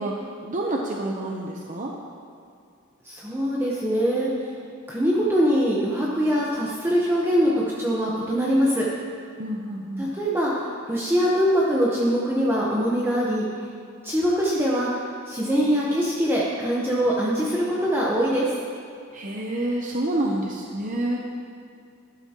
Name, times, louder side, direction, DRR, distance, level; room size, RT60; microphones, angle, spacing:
voice 1, 0.0-1.9 9.4-10.1 19.1-21.2, right 1 dB, 40° right, -1 dB, 0.7 m, -28 dB
voice 2, 3.0-4.3 4.9-7.5 7.8-8.9 10.0-10.5 10.9-13.5 14.0-14.9 15.3-18.5, equal, 10° right, -5 dB, 1.0 m, -23 dB
12.5 x 12.0 x 2.9 m, 2.4 s
head